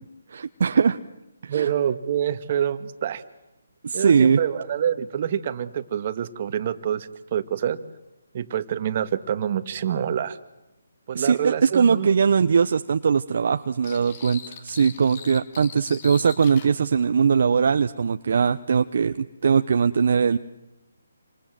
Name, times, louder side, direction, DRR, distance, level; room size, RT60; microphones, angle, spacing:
voice 1, 0.3-1.0 1.4-1.7 3.8-4.4 11.1-20.4, right 6 dB, 55° right, 9 dB, 1.0 m, -21 dB
voice 2, 1.5-3.2 3.9-7.8 8.3-10.4 11.1-12.1, right 9 dB, 40° right, 11 dB, 1.9 m, -26 dB
sound 1, 13.8-16.7, left 8 dB, 35° left, 2.7 m, -41 dB
28.5 x 27.0 x 7.7 m, 0.95 s
figure-of-eight pair, 145°, 0 cm